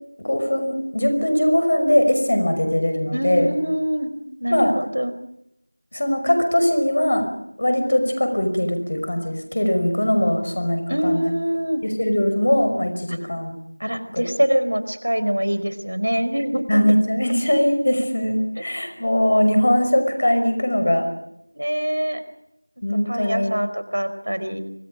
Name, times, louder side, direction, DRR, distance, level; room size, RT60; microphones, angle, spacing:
voice 1, 0.2-3.5 4.5-4.7 5.9-11.3 11.8-13.5 14.1-14.2 16.7-21.1 22.8-23.6, left 1 dB, 30° left, 7 dB, 5.4 m, -20 dB
voice 2, 3.1-4.1 4.4-5.1 10.9-11.8 13.1-13.2 13.8-16.8 18.6-18.7 21.5-22.2 23.1-24.6, equal, 60° right, 11 dB, 4.5 m, -24 dB
29.5 x 26.0 x 5.1 m, 0.79 s
figure-of-eight pair, 175°, 0 cm